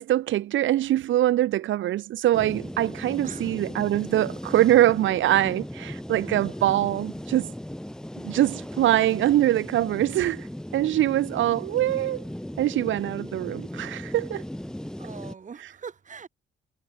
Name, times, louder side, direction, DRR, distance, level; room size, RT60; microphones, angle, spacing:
voice 1, 0.0-7.5 8.2-10.5 10.7-12.2 12.6-14.4, right 13 dB, 75° right, 1.1 m, -23 dB
sound 1, 2.3-15.3, left 1 dB, 5° left, 1.3 m, -37 dB
voice 2, 15.0-16.3, right 6 dB, 40° right, 2.4 m, -42 dB
cardioid pair, 90°, 20 cm